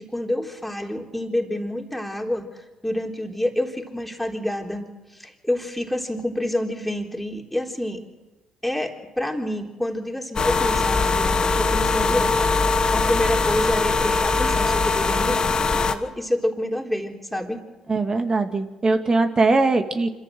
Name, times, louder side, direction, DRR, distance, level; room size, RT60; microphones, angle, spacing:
voice 1, 0.0-4.9 5.1-8.0 8.6-15.4 15.7-17.6, left 1 dB, 5° left, 1 dB, 3.9 m, -28 dB
sound 1, 10.4-16.0, left 4 dB, 40° left, 1.6 m, -21 dB
voice 2, 17.9-20.1, right 3 dB, 35° right, 6 dB, 2.2 m, -21 dB
26.0 x 14.0 x 7.8 m, 1.1 s
hypercardioid pair, 50°, 2 cm